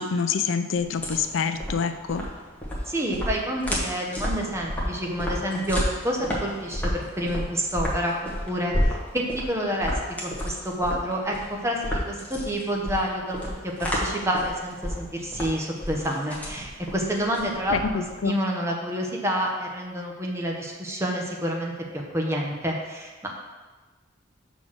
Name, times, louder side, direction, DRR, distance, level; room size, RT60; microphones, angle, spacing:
voice 1, 0.0-2.2 17.7-18.4, left 5 dB, 75° left, 9 dB, 0.4 m, -26 dB
sound 1, 0.8-18.2, equal, 10° left, 1.3 m, -31 dB
voice 2, 2.9-9.9 10.2-23.3, equal, 15° right, 0 dB, 1.0 m, -28 dB
6.0 x 4.0 x 6.2 m, 1.3 s
head